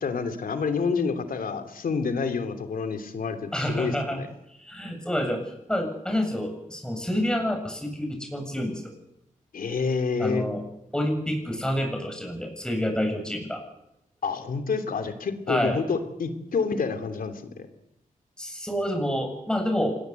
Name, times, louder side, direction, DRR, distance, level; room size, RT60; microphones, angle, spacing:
voice 1, 0.0-4.3 9.5-10.4 14.2-17.4, left 5 dB, 85° left, 8 dB, 3.0 m, -28 dB
voice 2, 3.5-4.2 4.6-5.4 5.7-8.9 10.2-10.6 10.9-13.6 15.5-15.8 18.4-20.0, equal, 5° left, 4 dB, 7.8 m, -28 dB
26.5 x 20.5 x 8.3 m, 0.83 s
wide cardioid pair, 100°, 14 cm